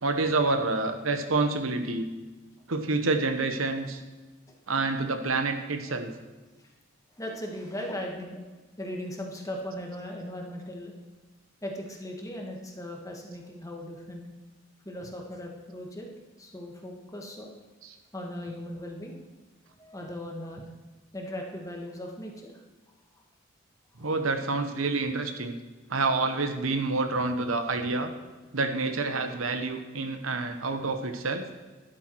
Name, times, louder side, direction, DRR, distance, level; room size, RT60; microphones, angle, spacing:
voice 1, 0.0-2.1 2.7-4.0 4.7-6.1 17.8-17.9 24.0-25.5 25.9-28.1 28.5-31.4, right 3 dB, 85° right, 7 dB, 1.2 m, -28 dB
voice 2, 7.2-8.4 8.8-10.9 11.6-14.3 14.8-16.1 16.4-17.5 18.1-19.2 19.8-20.7 21.1-22.5 24.0-24.1, left 1 dB, 15° left, 1 dB, 1.8 m, -38 dB
12.0 x 11.5 x 4.7 m, 1.2 s
head